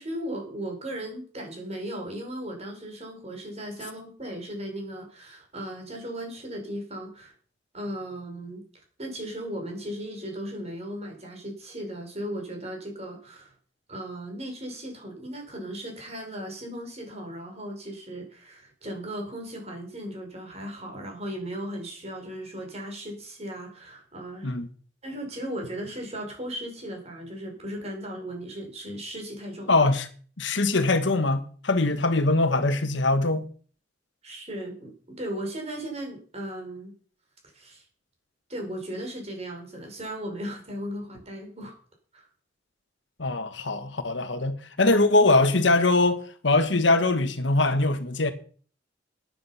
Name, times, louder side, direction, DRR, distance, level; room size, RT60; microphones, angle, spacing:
voice 1, 0.0-7.3 7.7-8.6 9.0-13.5 13.9-24.5 25.0-29.9 34.2-36.9 37.5-37.8 38.5-41.7 42.1-42.3, right 1 dB, 35° right, 4.8 m, -36 dB
voice 2, 29.7-30.1 30.4-33.4 43.2-48.3, left 2 dB, 70° left, 1.4 m, -22 dB
12.0 x 9.9 x 5.6 m
head